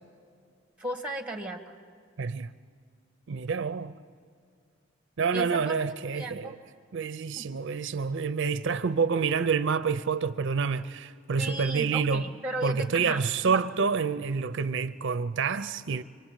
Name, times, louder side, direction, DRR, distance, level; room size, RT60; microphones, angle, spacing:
voice 1, 0.8-1.7 5.3-5.7 6.1-6.5 7.3-7.4 11.4-13.6, right 1 dB, 5° right, 1.8 m, -35 dB
voice 2, 2.2-2.5 3.3-4.0 5.2-6.6 6.9-12.3 12.6-16.0, right 5 dB, 65° right, 0.6 m, -28 dB
25.5 x 23.5 x 9.0 m
head